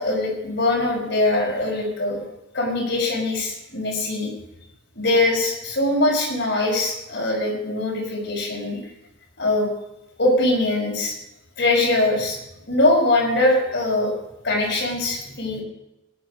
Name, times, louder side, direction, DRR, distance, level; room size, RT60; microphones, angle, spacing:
voice 1, 0.0-2.2 2.5-4.3 5.0-8.8 9.4-9.7 10.2-11.1 11.6-12.4 12.7-14.1 14.4-15.6, left 2 dB, 55° left, -1 dB, 5.5 m, -22 dB
18.0 x 12.0 x 5.3 m, 0.92 s
head